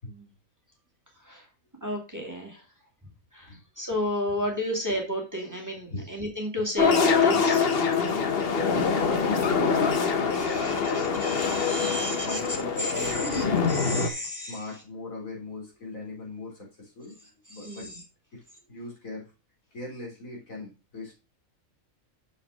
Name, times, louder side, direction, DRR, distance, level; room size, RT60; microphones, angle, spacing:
voice 1, 1.8-2.6 3.3-7.7 10.3-12.4 12.8-14.6 17.5-17.9, left 1 dB, 15° right, 0 dB, 2.1 m, -32 dB
sound 1, 6.8-14.1, left 5 dB, 50° left, 1.1 m, -24 dB
voice 2, 8.5-11.0 11.5-13.7 14.5-17.9 18.3-18.4 18.7-19.3 19.7-21.1, left 2 dB, 75° left, -3 dB, 4.0 m, -40 dB
7.0 x 5.7 x 4.7 m, 0.29 s
omnidirectional pair, 1.4 m